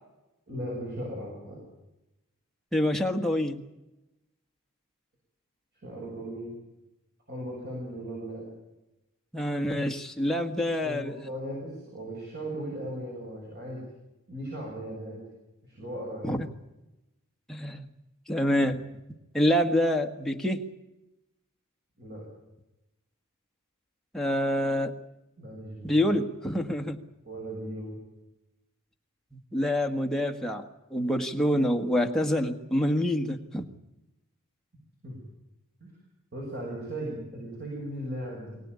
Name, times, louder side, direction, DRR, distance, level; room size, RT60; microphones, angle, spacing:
voice 1, 0.5-1.6 5.8-6.5 7.3-8.5 10.8-13.9 14.3-15.2 15.6-16.3 22.0-22.2 25.4-26.1 27.2-28.0 35.0-35.2 35.8-35.9 36.3-38.6, right 1 dB, 45° right, -2 dB, 7.4 m, -37 dB
voice 2, 2.7-3.6 9.3-11.2 16.2-16.5 17.5-17.9 18.3-18.8 19.3-20.7 24.1-24.9 25.8-27.0 29.3-33.7, left 1 dB, ahead, 3 dB, 1.6 m, -27 dB
23.5 x 17.5 x 9.8 m, 0.99 s
head